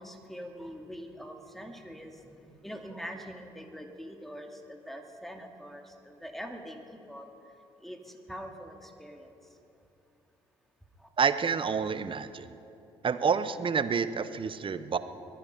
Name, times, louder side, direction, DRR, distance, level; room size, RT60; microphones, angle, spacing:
voice 1, 0.0-9.6 11.0-11.1, equal, ahead, 3 dB, 2.3 m, -44 dB
voice 2, 11.2-12.5 13.0-15.0, right 6 dB, 40° right, 13 dB, 0.9 m, -28 dB
21.5 x 10.5 x 5.4 m, 2.9 s
hypercardioid pair, 55°, 13 cm